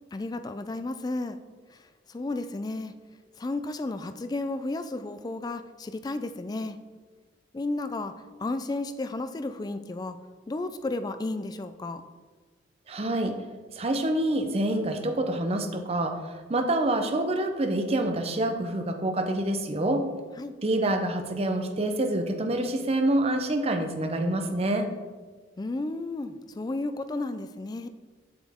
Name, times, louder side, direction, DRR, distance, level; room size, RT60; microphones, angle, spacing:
voice 1, 0.1-1.4 1.7-1.8 2.1-2.9 3.4-6.8 7.5-8.1 8.4-10.2 10.5-12.0 20.4-20.5 25.6-27.9, left 2 dB, 20° left, 10 dB, 0.3 m, -33 dB
voice 2, 12.9-13.3 13.7-20.0 20.6-24.9, right 1 dB, 35° right, 6 dB, 0.6 m, -27 dB
7.6 x 6.1 x 3.6 m, 1.4 s
head